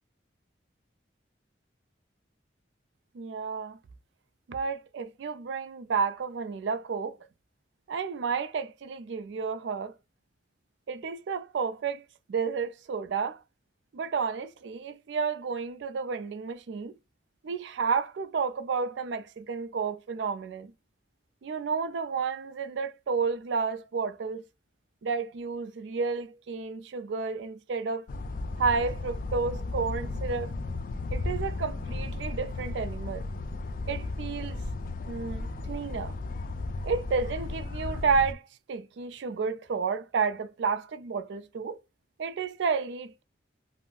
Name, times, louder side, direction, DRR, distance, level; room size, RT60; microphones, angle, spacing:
voice 1, 3.1-3.8 4.5-7.2 7.9-9.9 10.9-12.0 12.3-13.4 13.9-17.0 17.4-20.7 21.4-24.4 25.0-28.0 28.6-30.5 31.1-33.3 33.9-34.6 35.1-36.2 36.8-38.4 38.7-41.8 42.2-43.2, right 5 dB, 75° right, 0.4 m, -31 dB
sound 1, 28.1-38.3, left 2 dB, 45° left, 0.3 m, -35 dB
2.5 x 2.0 x 3.6 m
head